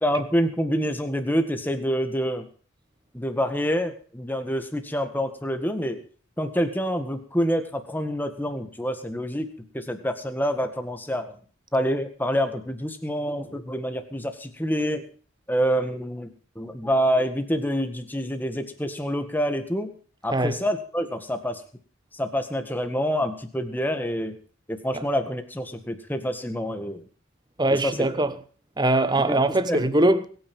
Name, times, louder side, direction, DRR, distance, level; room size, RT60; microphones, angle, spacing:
voice 1, 0.0-2.5 3.1-6.0 6.4-9.5 9.7-11.4 11.7-15.0 15.5-16.3 16.6-19.9 20.2-21.6 22.1-24.4 24.7-27.1 27.7-28.0 29.2-29.8, equal, 10° left, 1.7 m, -27 dB
voice 2, 27.6-28.3 28.8-30.3, right 1 dB, 20° right, 1.0 m, -21 dB
22.0 x 9.5 x 5.5 m
head